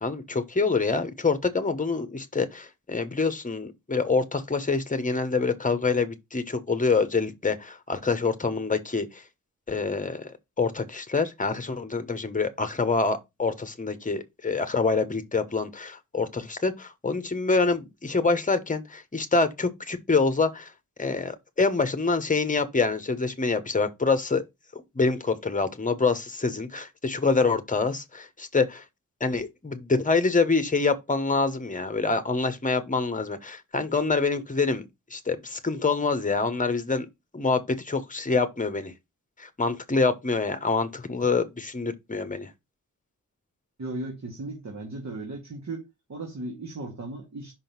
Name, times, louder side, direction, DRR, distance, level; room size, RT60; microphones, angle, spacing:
voice 1, 0.0-9.2 9.7-20.7 21.0-24.4 24.7-28.8 29.2-34.8 35.1-37.1 37.3-38.9 39.4-42.5, left 4 dB, 25° left, 1.1 m, -26 dB
voice 2, 43.8-47.5, right 2 dB, 60° right, 2.2 m, -36 dB
5.8 x 3.8 x 6.0 m
wide cardioid pair, 95°, 31 cm